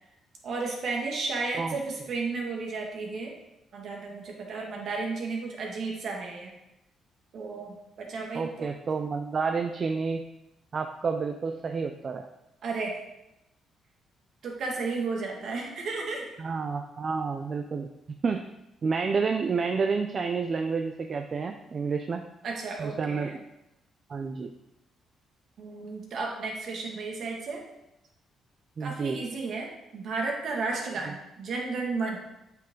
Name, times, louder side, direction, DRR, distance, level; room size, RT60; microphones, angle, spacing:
voice 1, 0.4-3.3 3.7-6.5 7.3-8.7 12.6-13.0 14.4-16.3 22.4-23.4 25.6-27.6 28.8-32.2, right 3 dB, 65° right, 0 dB, 2.0 m, -33 dB
voice 2, 8.3-10.2 10.7-12.3 16.4-17.9 18.2-18.4 18.8-22.2 22.8-23.4 24.1-24.5 28.8-29.2 31.1-31.2, right 5 dB, 45° right, 5 dB, 0.5 m, -29 dB
8.5 x 5.8 x 3.8 m, 0.90 s
cardioid pair, 90°, 0 cm